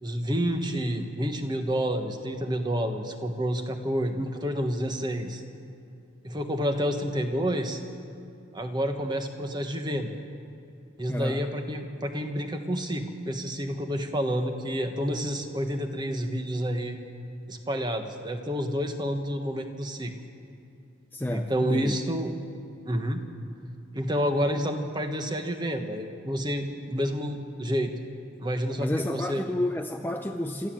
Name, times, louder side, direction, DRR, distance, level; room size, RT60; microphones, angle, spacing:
voice 1, 0.0-5.4 6.2-7.8 8.5-10.1 11.0-17.0 17.5-20.1 21.3-22.3 22.8-23.3 23.9-27.9 28.4-29.4, equal, 20° right, 5 dB, 1.3 m, -29 dB
voice 2, 11.1-11.5 21.1-22.0 28.8-30.7, left 1 dB, 10° left, 4 dB, 0.5 m, -30 dB
26.5 x 13.5 x 7.6 m, 2.5 s
head